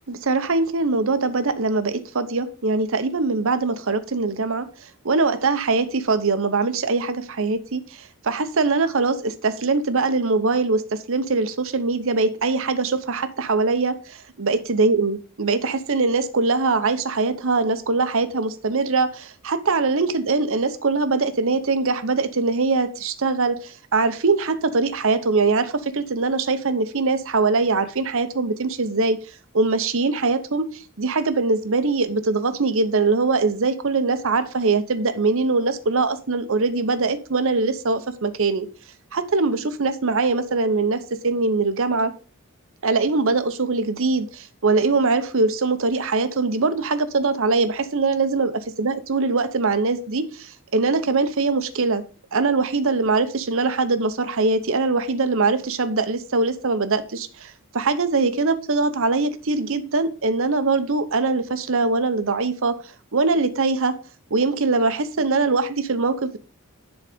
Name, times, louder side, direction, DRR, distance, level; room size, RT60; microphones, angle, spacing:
voice 1, 0.1-4.7 5.0-29.2 29.5-38.7 39.1-42.1 42.8-52.0 52.3-62.8 63.1-63.9 64.3-66.4, right 3 dB, 65° right, 0.9 m, -22 dB
10.5 x 4.0 x 5.0 m
head